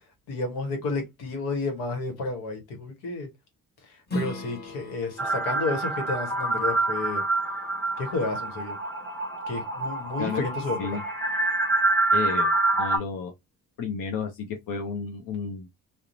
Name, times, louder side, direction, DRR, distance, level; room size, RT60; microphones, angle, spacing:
voice 1, 0.3-3.3 4.1-7.2 8.0-8.8 9.5-10.8, left 3 dB, 80° left, 1.1 m, -31 dB
Strum, 4.1-9.3, equal, 25° left, 1.1 m, -39 dB
sound 1, 5.2-13.0, right 2 dB, 5° left, 1.1 m, -26 dB
voice 2, 12.1-13.3 13.8-15.7, left 5 dB, 60° left, 0.7 m, -32 dB
2.7 x 2.1 x 2.5 m
supercardioid pair, 60°, 38 cm